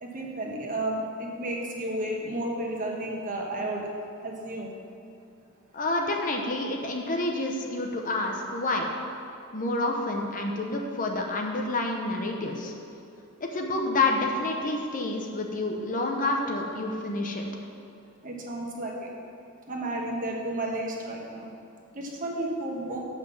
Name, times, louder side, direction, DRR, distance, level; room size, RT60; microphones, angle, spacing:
voice 1, 0.0-3.9 4.2-4.7 18.2-19.1 19.7-21.5 21.9-23.0, right 1 dB, 40° right, -1 dB, 1.2 m, -32 dB
voice 2, 5.7-8.9 9.5-12.7 13.4-17.5, left 2 dB, 40° left, 1 dB, 0.9 m, -28 dB
7.4 x 5.8 x 7.0 m, 2.4 s
head